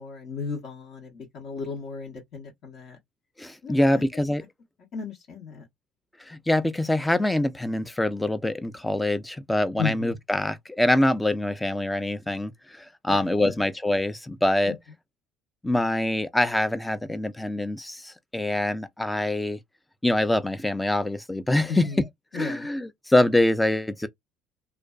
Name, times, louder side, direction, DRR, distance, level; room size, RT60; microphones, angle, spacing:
voice 1, 0.0-3.0 3.6-4.2 4.9-5.6 9.8-10.2 13.1-13.5 14.7-14.8 21.7-22.0 22.3-22.7, left 5 dB, 55° left, 0.9 m, -35 dB
voice 2, 3.4-4.4 6.2-14.8 15.6-19.6 20.0-21.9 22.3-24.1, left 1 dB, 10° left, 0.4 m, -25 dB
2.5 x 2.2 x 2.3 m
supercardioid pair, 100°, 0 cm